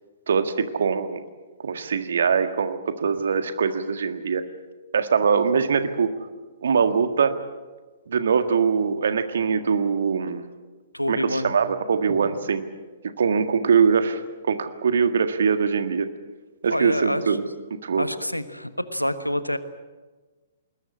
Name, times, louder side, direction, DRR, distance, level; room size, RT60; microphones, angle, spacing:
voice 1, 0.3-1.2 1.6-4.4 4.9-6.2 6.6-7.3 8.1-10.4 11.1-12.6 13.2-14.2 14.5-16.1 16.6-17.4 17.7-18.1, right 6 dB, 55° right, 9 dB, 1.7 m, -22 dB
voice 2, 10.9-11.5 16.7-17.4 18.0-19.6, equal, 90° left, 12 dB, 1.3 m, -27 dB
21.0 x 20.0 x 8.6 m, 1.3 s
figure-of-eight pair, 120°, 0 cm